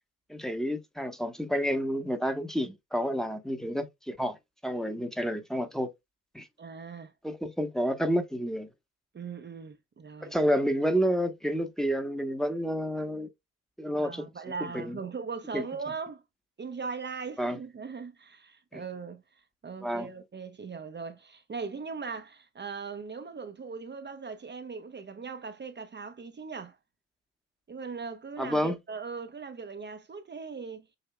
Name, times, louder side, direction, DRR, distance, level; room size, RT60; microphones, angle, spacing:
voice 1, 0.3-4.4 4.6-5.9 6.3-6.5 7.2-8.7 10.2-13.3 13.8-14.3 14.7-15.0 15.5-15.6 17.4-17.6 18.7-18.8 19.8-20.1 28.4-28.8, equal, ahead, 1.1 m, -29 dB
voice 2, 6.6-7.1 9.1-10.3 14.0-16.2 16.6-26.8 27.7-30.9, right 5 dB, 30° right, 0.8 m, -39 dB
6.5 x 2.7 x 2.3 m
hypercardioid pair, 50°, 37 cm